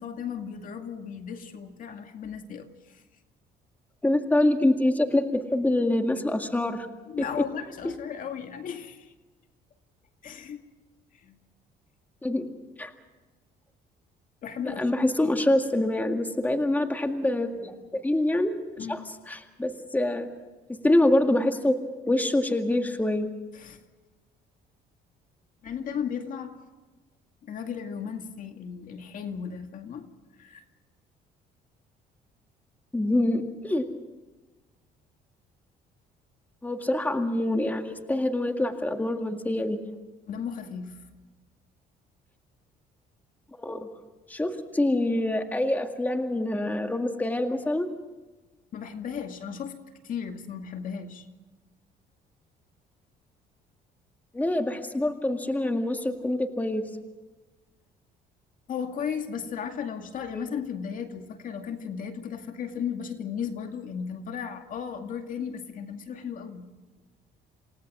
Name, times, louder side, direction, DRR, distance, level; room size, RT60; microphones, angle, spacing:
voice 1, 0.0-3.0 7.1-9.1 10.2-10.6 11.2-11.4 14.4-14.9 15.8-15.9 18.8-19.0 23.5-23.8 25.6-26.6 27.4-30.1 30.4-30.6 40.3-41.0 48.7-49.8 50.0-51.3 58.7-66.7, left 7 dB, 55° left, 5 dB, 2.2 m, -35 dB
voice 2, 4.0-6.9 7.2-7.3 7.8-7.9 12.2-12.5 12.8-12.9 14.6-18.6 18.9-20.3 20.8-21.8 22.1-23.3 32.9-33.9 36.6-39.8 43.6-43.9 44.3-47.9 54.3-56.9 60.3-60.5, left 1 dB, 10° left, 5 dB, 2.0 m, -25 dB
28.5 x 18.0 x 6.2 m, 1.2 s
cardioid pair, 110°, 17 cm